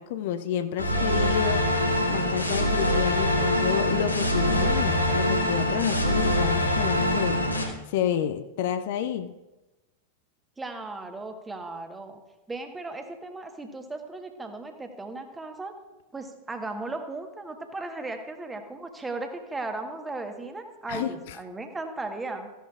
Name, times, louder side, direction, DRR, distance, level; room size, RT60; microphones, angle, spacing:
voice 1, 0.0-1.8 2.1-7.4 7.9-9.3 20.9-21.4, left 10 dB, 50° left, 10 dB, 0.5 m, -29 dB
sound 1, 0.8-7.6, left 1 dB, 85° left, 1.8 m, -24 dB
voice 2, 10.6-12.2 12.5-15.7 16.1-22.5, right 2 dB, 10° right, 6 dB, 1.3 m, -36 dB
15.0 x 11.0 x 2.4 m, 1.1 s
figure-of-eight pair, 90°, 0 cm